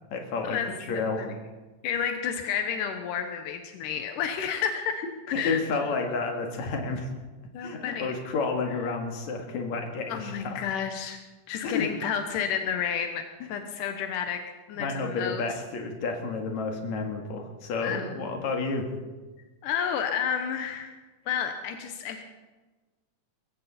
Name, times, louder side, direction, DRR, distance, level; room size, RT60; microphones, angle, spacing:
voice 1, 0.1-0.6 0.9-1.3 5.3-7.1 7.6-10.7 11.6-11.9 14.7-18.9, left 4 dB, 65° left, 3 dB, 3.2 m, -30 dB
voice 2, 0.9-1.4 1.8-5.0 5.4-5.6 5.9-6.1 7.5-8.1 10.1-11.2 11.5-13.2 13.5-14.4 14.7-15.4 17.8-18.1 19.6-20.9 21.3-22.2, left 8 dB, 85° left, 6 dB, 2.6 m, -31 dB
22.0 x 15.0 x 4.3 m, 1.3 s
omnidirectional pair, 3.6 m